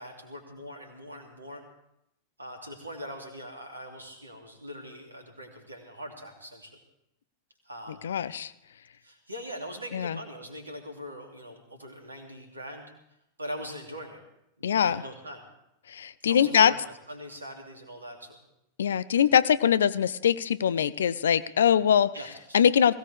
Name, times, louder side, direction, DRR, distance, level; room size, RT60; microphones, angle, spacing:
voice 1, 0.0-1.6 2.4-6.8 7.6-8.1 9.0-12.8 13.4-14.2 14.6-15.5 16.3-18.4 22.1-22.9, equal, 80° right, 3 dB, 2.7 m, -42 dB
voice 2, 8.0-8.5 9.9-10.2 14.6-15.0 15.9-16.7 18.8-22.1 22.5-22.9, left 8 dB, 65° left, 16 dB, 0.5 m, -22 dB
20.5 x 16.5 x 3.5 m, 0.80 s
figure-of-eight pair, 90°, 0 cm